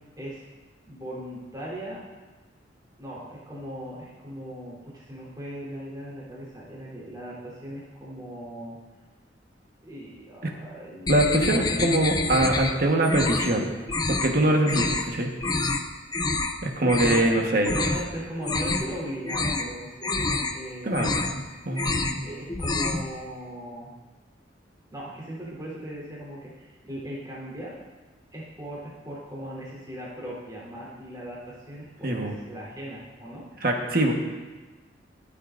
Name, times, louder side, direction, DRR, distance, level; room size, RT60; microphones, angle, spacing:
voice 1, 0.9-2.0 3.0-8.8 9.8-11.9 17.2-17.3 17.7-20.9 21.9-23.9 24.9-27.8 28.3-33.4, equal, 20° right, -5 dB, 3.7 m, -39 dB
sound 1, 11.1-12.7 13.0-13.5 13.9-14.3 14.6-15.0 15.4-15.8 16.1-16.5 16.8-17.3 17.6-18.0 18.4-18.9 19.2-19.7 20.0-20.5 20.9-21.4 21.7-22.2 22.5-23.1, left 3 dB, 20° left, 0.6 m, -27 dB
voice 2, 11.1-13.7 14.2-15.3 16.6-17.7 20.8-22.2 32.0-32.3 33.6-34.1, right 1 dB, 55° right, 1 dB, 1.4 m, -23 dB
25.0 x 8.4 x 2.6 m, 1.3 s
head